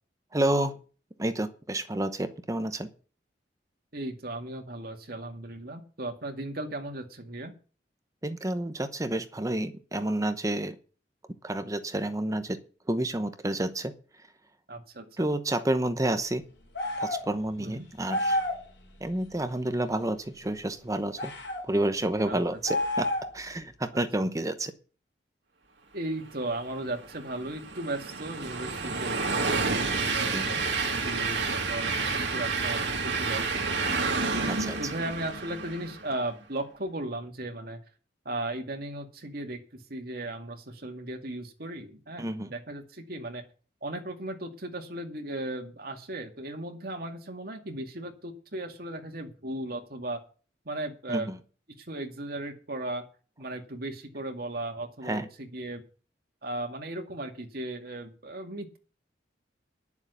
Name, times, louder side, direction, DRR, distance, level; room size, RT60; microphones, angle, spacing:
voice 1, 0.3-0.8 1.2-2.9 8.2-10.7 11.4-12.6 12.9-13.9 15.2-16.4 17.0-18.4 19.0-21.3 21.7-23.1 23.3-24.7 30.3-30.6 34.4-34.8 42.2-42.5 51.1-51.4 55.1-55.3, right 1 dB, 20° right, 10 dB, 0.9 m, -29 dB
voice 2, 3.9-7.5 14.7-15.3 17.6-17.9 22.2-22.6 23.9-24.3 25.9-34.0 34.8-37.8 38.3-43.5 43.8-50.2 50.7-51.3 51.8-53.0 53.4-55.8 56.4-58.8, right 1 dB, 55° right, 4 dB, 2.2 m, -36 dB
sound 1, 16.7-17.3 18.1-18.6 21.2-21.6 22.6-23.4, left 1 dB, 70° left, 4.0 m, -29 dB
Train, 26.7-36.2, right 4 dB, 70° right, 2.4 m, -30 dB
10.5 x 7.1 x 8.2 m, 0.37 s
head